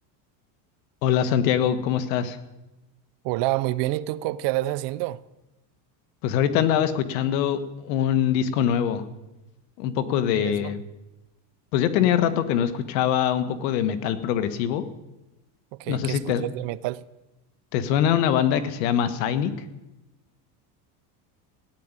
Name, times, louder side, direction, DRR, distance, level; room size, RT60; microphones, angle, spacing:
voice 1, 1.0-2.4 6.2-9.0 9.8-10.8 11.7-14.8 15.9-16.4 17.7-19.5, left 9 dB, 85° left, 1.7 m, -23 dB
voice 2, 3.2-5.2 10.3-10.8 15.7-17.0, right 17 dB, 60° right, 0.8 m, -28 dB
16.5 x 9.6 x 9.1 m
supercardioid pair, 125°, 48 cm